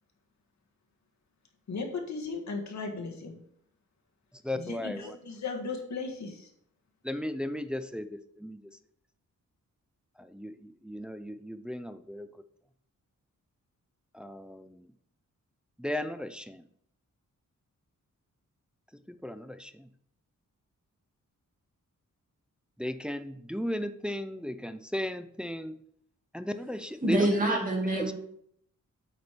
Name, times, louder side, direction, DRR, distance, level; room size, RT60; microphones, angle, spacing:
voice 1, 1.7-3.4 4.5-6.5, left 4 dB, 60° left, 2 dB, 1.6 m, -36 dB
voice 2, 4.4-5.2 7.0-8.6 10.2-12.3 14.1-14.9 15.8-16.7 19.2-19.9 22.8-25.8 26.3-27.6 28.0-28.1, left 1 dB, 5° right, 9 dB, 0.4 m, -35 dB
voice 3, 27.0-28.1, right 1 dB, 25° right, -2 dB, 2.5 m, -26 dB
8.3 x 5.0 x 4.4 m, 0.69 s
wide cardioid pair, 115°, 31 cm